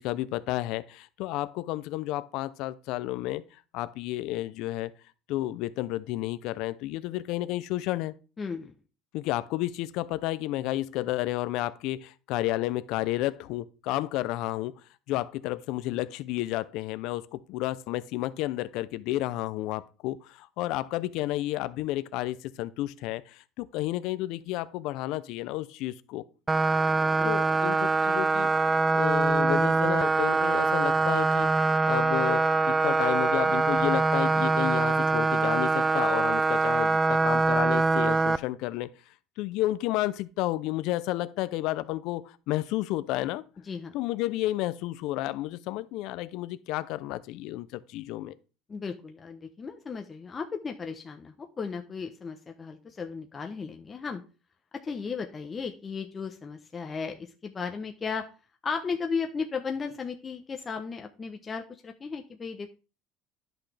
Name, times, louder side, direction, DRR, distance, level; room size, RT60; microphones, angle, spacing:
voice 1, 0.0-3.4 3.7-4.9 5.3-8.1 9.1-14.7 15.1-26.2 27.2-28.5 28.9-31.5 31.9-38.9 39.4-43.4 43.9-48.3, left 16 dB, 65° left, 0.5 m, -31 dB
voice 2, 8.4-8.7 27.1-27.3 43.7-43.9 48.7-54.2 54.8-58.2 58.6-62.7, left 5 dB, 25° left, 0.7 m, -35 dB
sound 1, 26.5-38.4, right 3 dB, 15° right, 0.3 m, -24 dB
10.5 x 5.9 x 3.3 m
cardioid pair, 130°, 0 cm